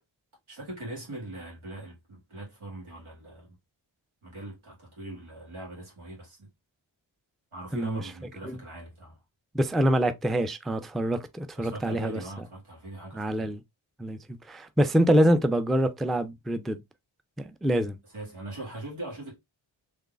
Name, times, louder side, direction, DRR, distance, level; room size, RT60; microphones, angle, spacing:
voice 1, 0.5-3.6 4.2-6.5 7.5-9.2 11.6-13.5 18.0-19.4, right 1 dB, 85° right, 1.9 m, -41 dB
voice 2, 9.5-12.2 13.1-13.6 14.0-14.2 14.5-16.8 17.6-18.0, right 1 dB, ahead, 0.4 m, -25 dB
3.7 x 3.2 x 2.4 m
cardioid pair, 45°, 48 cm